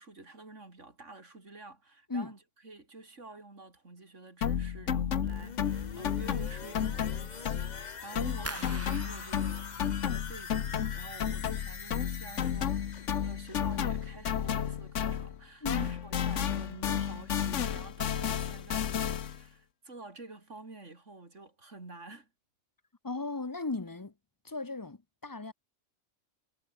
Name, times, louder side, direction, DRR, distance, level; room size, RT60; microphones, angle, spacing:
voice 1, 0.0-22.3, right 3 dB, 90° right, 4.3 m, -49 dB
sound 1, 4.4-7.9 8.1-15.4 15.6-19.4, left 8 dB, 85° left, 1.4 m, -32 dB
sound 2, 5.3-15.0 15.3-15.4, left 6 dB, 40° left, 1.0 m, -45 dB
sound 3, 8.5-11.3 11.6-12.3 12.7-13.1 13.5-13.7, right 2 dB, 15° right, 1.2 m, -46 dB
voice 2, 15.6-15.9 23.0-24.1 24.4-25.5, left 3 dB, 20° left, 0.7 m, -36 dB
omnidirectional pair, 1.2 m